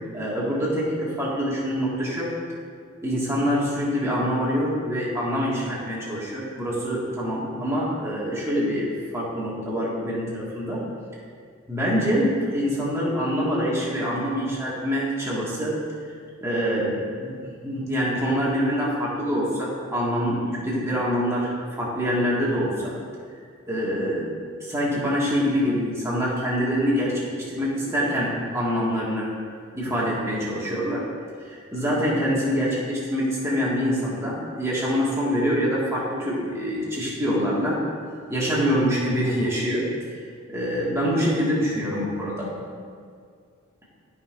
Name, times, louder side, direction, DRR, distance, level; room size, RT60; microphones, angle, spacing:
voice 1, 0.1-2.3 3.0-8.8 9.1-10.8 11.7-15.7 16.4-17.4 17.6-22.9 23.7-24.3 24.6-29.3 29.7-31.0 31.4-37.8 38.3-39.8 40.5-42.5, equal, 15° right, -7 dB, 1.9 m, -25 dB
13.0 x 5.6 x 2.6 m, 2.1 s
head